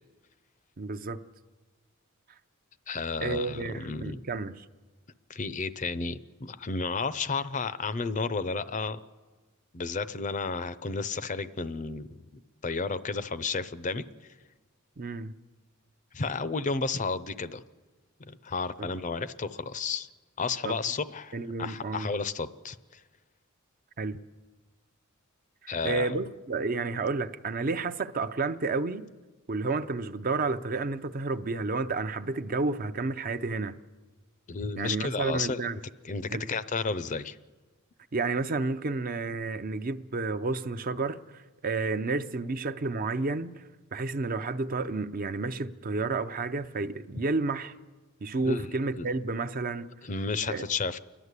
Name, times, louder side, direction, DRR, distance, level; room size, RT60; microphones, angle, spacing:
voice 1, 0.8-1.2 3.2-4.7 15.0-15.3 18.8-18.9 20.6-20.7 21.3-22.1 24.0-24.2 25.6-29.0 29.5-33.8 34.8-35.8 36.3-36.4 38.1-41.2 41.6-43.6 43.9-47.7 48.2-49.9 50.5-50.7, right 3 dB, 40° right, 0.6 m, -31 dB
voice 2, 2.9-4.2 5.3-9.0 9.7-12.1 12.6-14.0 16.1-17.6 18.2-20.1 20.4-21.3 21.6-22.8 25.7-26.2 34.5-35.6 36.0-37.4 48.4-49.1 50.0-51.0, left 4 dB, 35° left, 0.6 m, -32 dB
29.5 x 11.0 x 8.2 m
head